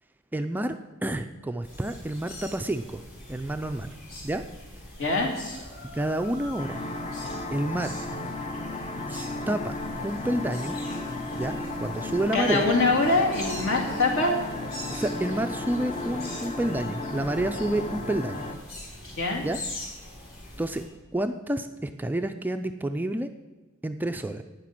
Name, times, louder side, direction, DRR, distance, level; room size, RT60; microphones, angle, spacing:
voice 1, 0.3-0.8 1.0-3.0 3.3-3.9 4.2-4.4 5.9-6.8 7.5-8.0 9.1-9.7 10.0-10.8 11.3-12.7 14.9-18.4 19.4-19.6 20.6-20.8 21.1-23.3 23.8-24.4, right 1 dB, 10° right, 7 dB, 0.4 m, -29 dB
sound 1, 1.6-20.8, left 1 dB, 45° left, 4.3 m, -43 dB
voice 2, 5.0-5.4 12.3-14.4 19.2-19.4, left 3 dB, 65° left, 0 dB, 2.4 m, -23 dB
sound 2, 6.6-18.6, left 2 dB, 30° left, 0.9 m, -34 dB
11.0 x 9.3 x 5.9 m, 1.2 s
head